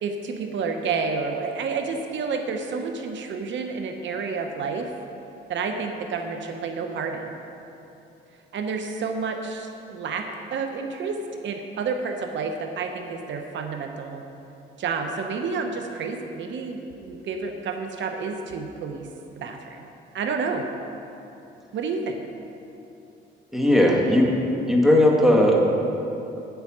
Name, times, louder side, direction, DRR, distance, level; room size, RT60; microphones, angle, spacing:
voice 1, 0.0-4.9 5.5-7.3 8.5-14.2 14.8-19.1 19.4-19.8 20.1-20.7 21.7-22.2, right 4 dB, 70° right, 5 dB, 0.9 m, -30 dB
voice 2, 23.5-24.3 24.7-25.6, left 1 dB, ahead, -2 dB, 1.9 m, -17 dB
9.5 x 8.2 x 6.1 m, 2.9 s
cardioid pair, 90°, 20 cm